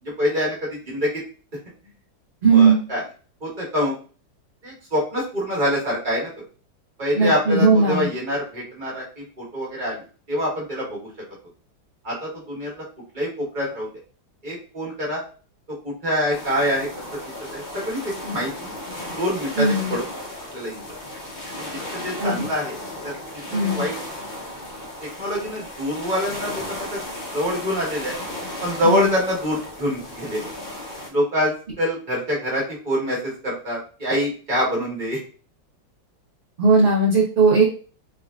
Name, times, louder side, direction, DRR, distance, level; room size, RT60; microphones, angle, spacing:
voice 1, 0.0-1.2 2.5-3.0 3.4-3.9 4.6-6.3 7.0-11.1 12.0-12.8 13.1-13.9 14.4-15.2 15.8-16.9 17.5-18.7 19.2-20.0 20.5-20.9 21.6-22.8 23.0-23.1 23.6-24.3 25.2-27.0 27.3-28.1 28.6-30.5 31.1-35.2, equal, 30° right, -4 dB, 1.2 m, -25 dB
voice 2, 2.4-2.8 7.1-8.1 19.6-19.9 22.2-22.5 23.5-23.8 28.8-29.1 36.6-37.6, right 3 dB, 45° right, -6 dB, 0.7 m, -17 dB
sound 1, 16.3-31.1, left 1 dB, 55° left, 0.5 m, -35 dB
3.5 x 3.2 x 2.4 m, 0.38 s
omnidirectional pair, 2.1 m